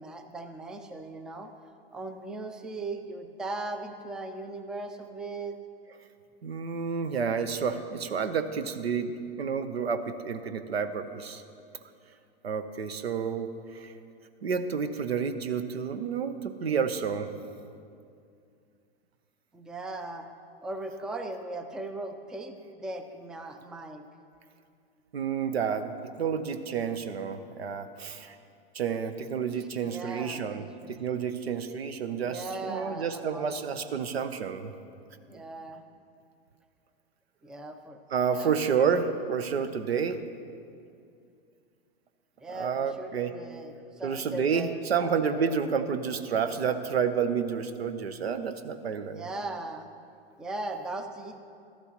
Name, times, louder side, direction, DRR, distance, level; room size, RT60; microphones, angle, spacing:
voice 1, 0.0-1.5 1.9-5.6 19.5-20.3 20.6-24.0 29.5-30.9 32.2-33.5 35.3-35.8 37.4-38.0 38.3-38.5 38.9-39.0 42.4-45.6 49.1-49.9 50.4-51.4, right 2 dB, ahead, 7 dB, 0.3 m, -38 dB
voice 2, 6.4-9.1 9.4-11.4 12.4-13.9 14.4-17.3 25.1-28.4 28.7-34.7 35.3-35.4 38.1-40.2 42.5-43.3 44.0-49.3, right 6 dB, 90° right, 10 dB, 0.8 m, -30 dB
13.0 x 12.0 x 3.0 m, 2.4 s
hypercardioid pair, 110°, 30 cm